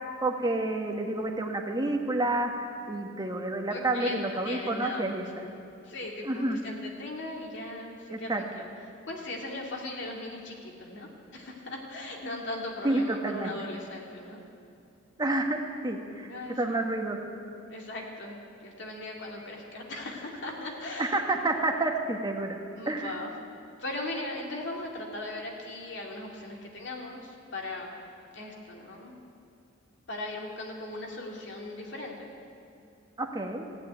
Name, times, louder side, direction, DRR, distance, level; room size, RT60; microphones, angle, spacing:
voice 1, 0.2-2.5 2.9-5.2 6.2-6.6 8.1-8.4 12.8-13.5 15.2-16.3 16.6-17.2 21.0-22.6 22.9-23.2 33.2-33.7, right 2 dB, 20° right, 2 dB, 1.3 m, -29 dB
voice 2, 3.7-5.3 5.8-8.7 9.1-14.4 16.3-16.8 17.7-21.2 22.8-23.3 23.8-28.0 28.3-29.1 30.1-32.3, left 2 dB, 60° left, -1 dB, 2.5 m, -38 dB
15.0 x 9.3 x 9.3 m, 2.6 s
head